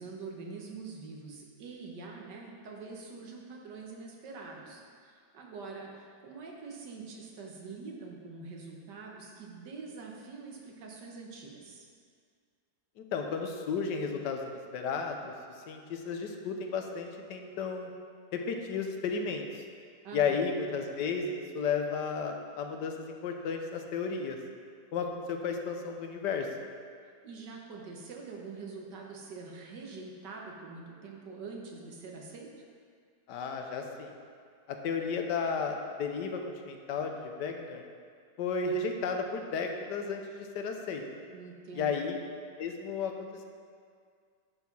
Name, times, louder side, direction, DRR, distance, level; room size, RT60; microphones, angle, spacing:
voice 1, 0.0-11.9 20.0-20.4 27.2-32.7 41.3-42.0, right 4 dB, 80° right, -1 dB, 1.8 m, -45 dB
voice 2, 13.0-15.3 15.7-17.9 18.3-19.6 20.1-24.4 24.9-26.5 33.3-34.1 34.7-37.8 38.4-41.0 41.8-42.2 42.6-43.4, left 5 dB, 85° left, 4 dB, 1.4 m, -33 dB
10.5 x 4.7 x 5.4 m, 2.1 s
omnidirectional pair, 1.8 m